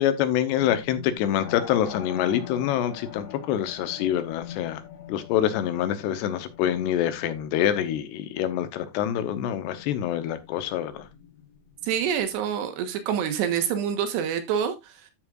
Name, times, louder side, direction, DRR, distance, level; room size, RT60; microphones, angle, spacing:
voice 1, 0.0-4.8 5.1-11.1, left 10 dB, 85° left, 3.1 m, -26 dB
sound 1, 0.5-12.3, left 10 dB, 35° left, 2.1 m, -46 dB
sound 2, 1.4-6.6, left 7 dB, 55° left, 5.3 m, -44 dB
voice 2, 11.8-14.8, right 8 dB, 85° right, 3.5 m, -26 dB
12.0 x 7.3 x 2.5 m
omnidirectional pair, 4.8 m